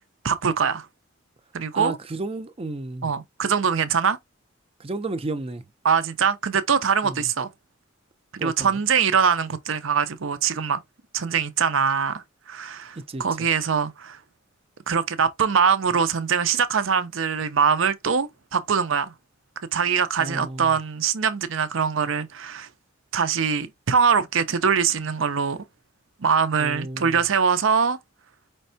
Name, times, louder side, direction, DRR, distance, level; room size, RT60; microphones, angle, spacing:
voice 1, 0.2-0.9 1.5-2.0 3.0-4.2 5.8-7.5 8.3-10.8 11.1-14.2 14.9-19.1 19.7-22.7 23.1-25.6 26.2-28.0, right 6 dB, 70° right, 0.6 m, -23 dB
voice 2, 1.7-3.1 4.8-5.6 7.0-7.2 8.4-8.7 13.1-13.5 20.2-20.7 26.6-27.2, right 2 dB, 30° right, 0.5 m, -32 dB
5.2 x 3.3 x 2.7 m
head